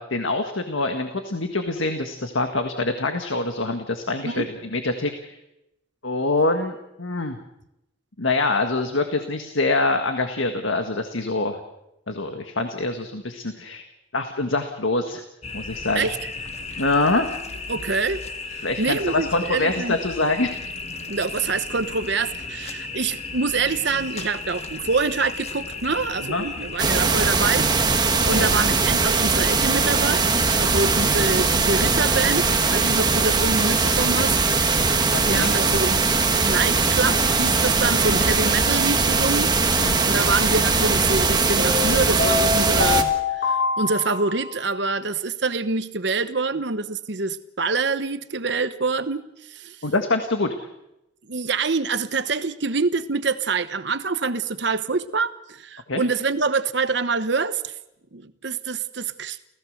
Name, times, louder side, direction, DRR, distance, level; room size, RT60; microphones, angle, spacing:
voice 1, 0.0-4.4 4.7-5.4 6.0-7.4 8.2-11.6 12.1-13.9 14.1-15.2 15.5-16.1 16.8-17.3 18.6-20.5 26.2-26.5 28.3-28.5 35.1-35.7 39.8-40.0 49.8-50.5 55.9-56.0, left 2 dB, 80° left, 6 dB, 1.7 m, -25 dB
sound 1, 15.4-26.8, left 4 dB, 35° left, 1.7 m, -34 dB
voice 2, 17.7-18.2 18.5-20.0 21.1-28.0 28.2-30.3 30.6-34.3 34.9-36.0 36.4-49.8 51.3-57.7 58.1-59.4, right 4 dB, 60° right, 12 dB, 1.0 m, -26 dB
sound 2, 26.8-43.0, right 4 dB, 20° right, 1.6 m, -20 dB
sound 3, 37.1-37.5 41.6-44.6, left 4 dB, 50° left, 6.6 m, -25 dB
29.5 x 16.5 x 6.6 m, 0.87 s
head